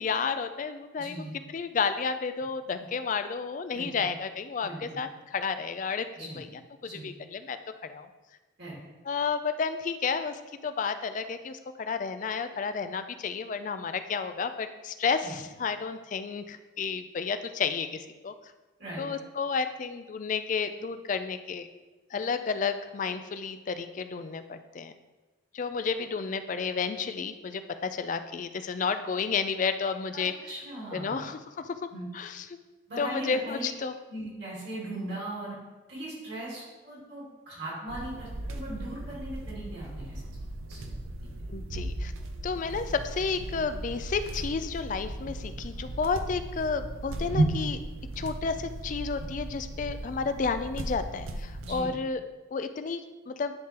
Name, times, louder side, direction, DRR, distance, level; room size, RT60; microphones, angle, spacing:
voice 1, 0.0-1.2 1.5-6.5 6.8-7.6 7.8-8.1 9.1-18.3 19.0-21.7 22.1-24.9 25.5-30.3 30.9-31.9 32.1-32.5 33.0-33.9 41.5-42.1 42.4-47.8 48.2-52.2 52.5-53.5, left 5 dB, 40° left, 10 dB, 0.3 m, -31 dB
voice 2, 1.0-1.3 3.7-4.1 4.6-5.0 6.2-6.4 6.8-7.1 8.6-8.7 15.2-15.3 18.8-19.0 30.1-31.2 31.9-32.1 32.9-33.7 34.1-35.6 35.9-40.2 40.7-40.9 51.6-51.9, right 1 dB, 55° right, -6 dB, 2.2 m, -39 dB
sound 1, 37.9-51.9, right 1 dB, 85° right, 0.6 m, -35 dB
10.5 x 3.7 x 2.9 m, 1.2 s
head